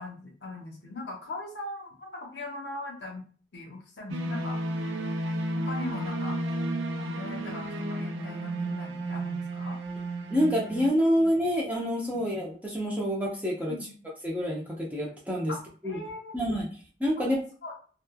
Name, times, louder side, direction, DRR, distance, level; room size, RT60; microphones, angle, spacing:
voice 1, 0.0-3.2 3.5-4.6 5.5-6.4 7.0-9.8 11.2-11.3 12.1-12.2 13.7-13.9 15.5-16.4 17.2-17.3 17.6-17.7, left 2 dB, 60° left, 0 dB, 0.7 m, -40 dB
sound 1, 4.1-10.9, right 1 dB, 80° right, 0.5 m, -32 dB
voice 2, 10.3-13.7 14.2-15.5 15.8-16.0 16.3-16.7 17.0-17.4, equal, 10° right, -4 dB, 0.6 m, -27 dB
3.0 x 2.2 x 2.2 m, 0.40 s
head